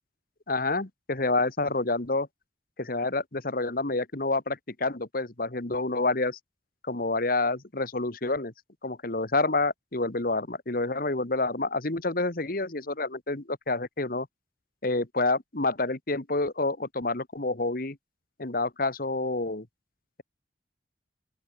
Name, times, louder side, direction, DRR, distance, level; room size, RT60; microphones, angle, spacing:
voice 1, 0.5-2.3 2.8-6.4 6.9-8.5 8.8-14.3 14.8-18.0 18.4-19.7, left 2 dB, 55° left, 1.7 m, -28 dB
open air
head